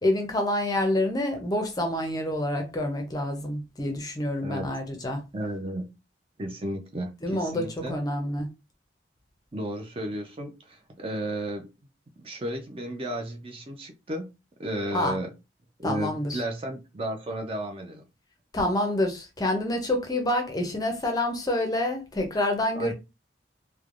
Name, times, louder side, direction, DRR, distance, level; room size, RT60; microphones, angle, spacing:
voice 1, 0.0-5.2 7.2-8.5 14.9-15.2 15.8-16.4 18.5-22.9, left 1 dB, 20° left, 0.5 m, -27 dB
voice 2, 5.3-5.9 6.4-8.0 9.5-11.7 12.2-14.3 14.6-15.3 15.8-18.0 22.7-22.9, right 1 dB, 30° right, 0.5 m, -33 dB
3.1 x 2.1 x 2.4 m
head